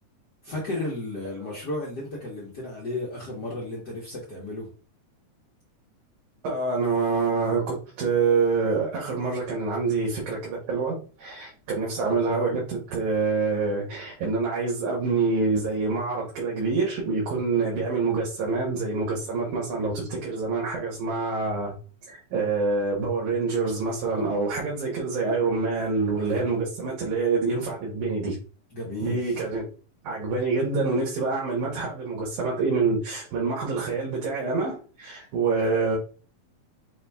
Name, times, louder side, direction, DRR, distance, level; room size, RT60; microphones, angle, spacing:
voice 1, 0.4-4.7 24.0-24.4 26.2-26.6 28.7-29.4, left 2 dB, 65° left, 1.0 m, -34 dB
voice 2, 6.4-21.7 22.1-28.4 29.0-29.7 30.0-36.0, right 4 dB, 80° right, 2.7 m, -26 dB
5.8 x 2.6 x 3.4 m
omnidirectional pair, 3.4 m